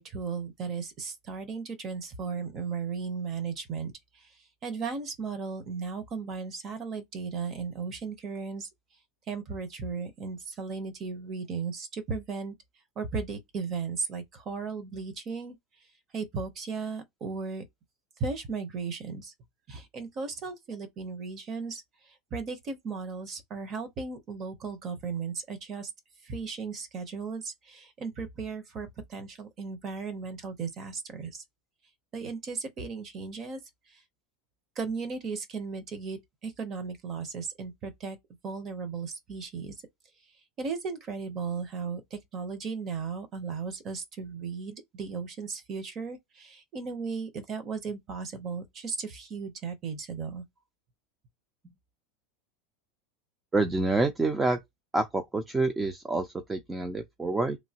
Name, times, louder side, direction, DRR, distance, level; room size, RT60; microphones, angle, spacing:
voice 1, 0.0-4.3 4.6-8.7 9.3-12.6 13.0-15.6 16.1-17.6 18.2-19.3 19.7-25.9 26.2-31.4 32.1-33.6 33.9-34.0 34.8-38.2 38.4-39.7 40.6-50.4, right 5 dB, 25° right, 0.7 m, -36 dB
voice 2, 53.5-54.6 54.9-57.6, right 2 dB, 10° right, 0.3 m, -27 dB
3.0 x 2.5 x 2.8 m
supercardioid pair, 160°, 0 cm